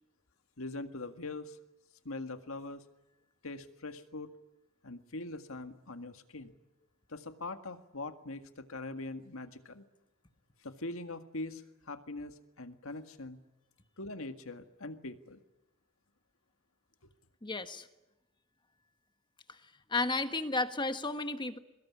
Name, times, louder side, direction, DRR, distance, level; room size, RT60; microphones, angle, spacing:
voice 1, 0.6-1.6 2.1-2.8 3.4-4.3 4.8-6.5 7.1-9.8 10.6-13.4 14.0-15.4, left 2 dB, 75° left, 8 dB, 1.9 m, -42 dB
voice 2, 17.4-17.9 19.5-21.6, left 3 dB, 20° left, 9 dB, 1.5 m, -33 dB
23.5 x 21.5 x 9.8 m, 0.95 s
head